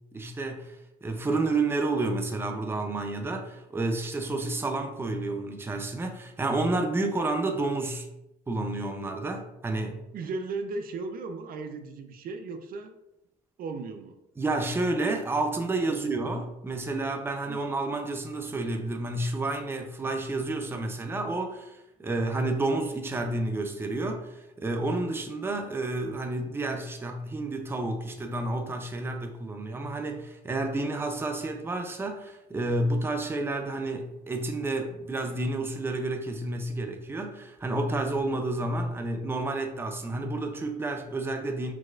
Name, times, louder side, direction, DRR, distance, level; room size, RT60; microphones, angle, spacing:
voice 1, 0.1-8.1 8.5-10.0 14.4-41.7, right 2 dB, 15° right, 4 dB, 0.6 m, -30 dB
voice 2, 10.1-13.0 13.6-14.2 15.9-16.1 17.5-17.7, right 3 dB, 60° right, 6 dB, 0.5 m, -36 dB
4.8 x 4.1 x 2.4 m, 0.87 s
cardioid pair, 110°, 17 cm